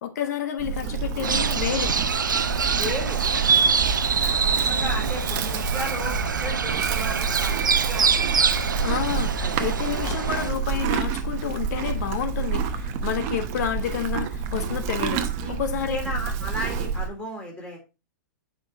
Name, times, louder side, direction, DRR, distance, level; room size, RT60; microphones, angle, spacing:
voice 1, 0.0-2.0 8.8-16.0, left 9 dB, 55° left, 1.3 m, -30 dB
Livestock farm animals working animals, 0.6-17.1, right 6 dB, 40° right, 0.8 m, -28 dB
sound 1, 1.2-10.5, right 6 dB, 80° right, 0.6 m, -25 dB
voice 2, 2.7-3.5 4.1-8.1 8.4-8.5 9.4-9.6 10.0-10.2 15.4-15.5 15.9-17.8, left 1 dB, 10° left, 3.2 m, -34 dB
8.0 x 5.2 x 3.0 m
figure-of-eight pair, 110°, 10 cm